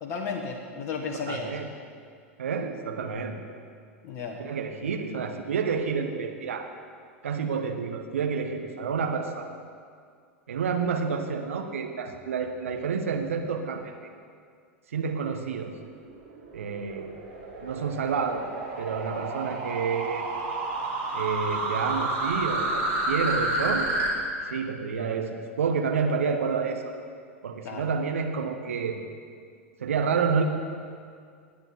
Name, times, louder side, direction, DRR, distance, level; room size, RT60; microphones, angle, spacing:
voice 1, 0.0-1.5 4.0-4.4 27.6-27.9, left 5 dB, 35° left, 2 dB, 1.2 m, -33 dB
voice 2, 1.1-1.7 2.4-3.3 4.4-6.7 7.2-9.5 10.5-13.9 14.9-15.7 16.5-17.1 17.6-18.5 18.8-20.3 21.1-23.9 24.4-26.9 27.4-29.0 29.8-30.4, right 5 dB, 70° right, 5 dB, 1.3 m, -29 dB
Bubble Noize, 16.0-24.1, right 2 dB, 50° right, 3.3 m, -30 dB
19.5 x 8.8 x 4.1 m, 2.2 s
figure-of-eight pair, 90°, 8 cm